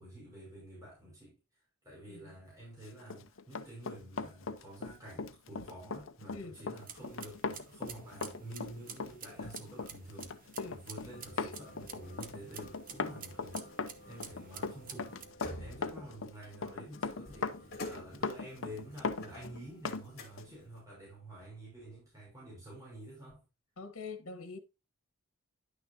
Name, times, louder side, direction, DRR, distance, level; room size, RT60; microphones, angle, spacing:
voice 1, 0.0-1.4 1.8-13.6 14.1-23.4, right 1 dB, 15° right, 5.3 m, -49 dB
Run, 3.0-20.0 20.4-20.5, left 4 dB, 65° left, 0.7 m, -39 dB
sound 1, 6.8-15.3, right 7 dB, 40° right, 1.0 m, -51 dB
sound 2, 11.1-20.8, left 1 dB, 50° left, 2.8 m, -51 dB
voice 2, 23.8-24.6, left 4 dB, 80° left, 1.3 m, -45 dB
10.5 x 6.3 x 2.8 m
head